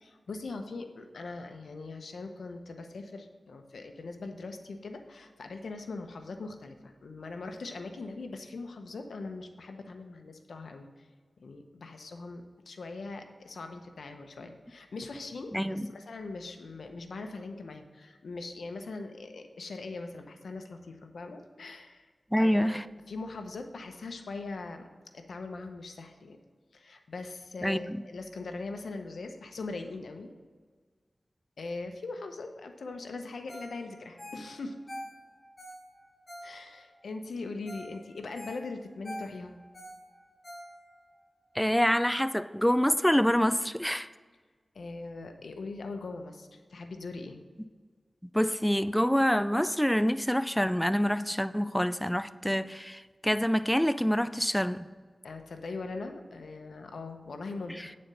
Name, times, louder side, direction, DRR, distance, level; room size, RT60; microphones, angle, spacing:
voice 1, 0.0-11.1 11.4-22.1 22.4-24.9 25.1-26.4 26.7-30.3 31.6-34.8 36.4-39.5 44.7-47.4 55.2-58.0, left 3 dB, 90° left, 5 dB, 0.8 m, -41 dB
voice 2, 15.5-15.9 22.3-22.8 27.6-28.0 41.6-44.1 48.3-54.9, equal, 5° left, 13 dB, 0.3 m, -26 dB
Ringtone, 33.5-33.8 34.0-36.9 37.4-37.5 37.7-37.9 38.2-41.1 41.5-41.6, equal, 35° left, 2.6 m, -45 dB
9.1 x 4.3 x 6.7 m, 1.5 s
cardioid pair, 50°, 0 cm